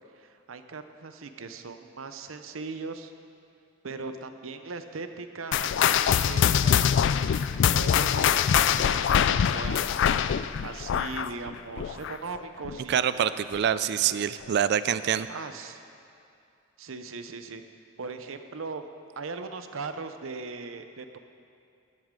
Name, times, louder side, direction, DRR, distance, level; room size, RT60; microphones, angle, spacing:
voice 1, 0.2-3.1 3.8-9.8 10.6-13.3 14.0-14.2 15.3-15.8 16.8-17.6 18.0-18.9 19.2-21.2, right 4 dB, 80° right, 8 dB, 0.7 m, -39 dB
sound 1, 5.5-12.4 12.6-13.0 13.6-13.7 14.4-14.5, left 8 dB, 60° left, 0.3 m, -24 dB
voice 2, 12.9-15.3, right 9 dB, 55° right, 14 dB, 0.3 m, -25 dB
15.5 x 10.5 x 3.8 m, 2.5 s
head